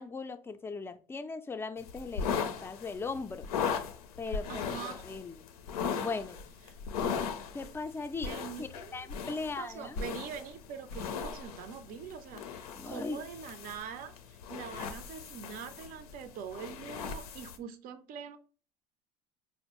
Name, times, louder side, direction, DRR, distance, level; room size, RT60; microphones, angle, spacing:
voice 1, 0.0-3.5 4.2-5.5 5.9-6.4 7.5-8.3 8.6-10.0 12.7-13.2, left 4 dB, 15° left, 0.3 m, -39 dB
sound 1, 1.8-17.6, left 6 dB, 85° left, 0.5 m, -38 dB
voice 2, 4.5-5.1 6.7-6.8 8.3-14.1 14.5-18.4, right 7 dB, 50° right, 0.5 m, -44 dB
4.2 x 2.0 x 2.9 m
hypercardioid pair, 80°, 19 cm